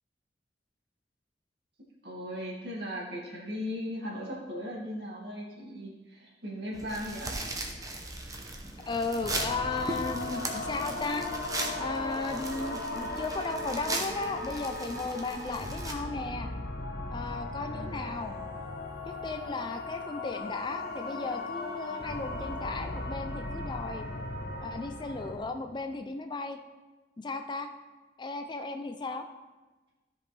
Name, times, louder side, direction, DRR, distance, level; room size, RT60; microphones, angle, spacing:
voice 1, 2.0-7.4 17.8-18.0, equal, 65° right, -4 dB, 2.2 m, -38 dB
sound 1, 6.7-15.9, right 2 dB, 20° right, 0.8 m, -38 dB
voice 2, 8.8-11.3 11.8-16.5 17.1-18.4 19.1-24.0 24.6-26.6 27.2-27.7 28.2-29.3, left 3 dB, 25° left, 6 dB, 0.4 m, -35 dB
sound 2, 9.2-25.4, left 2 dB, 60° left, 1.0 m, -37 dB
13.5 x 5.2 x 3.3 m, 1.2 s
head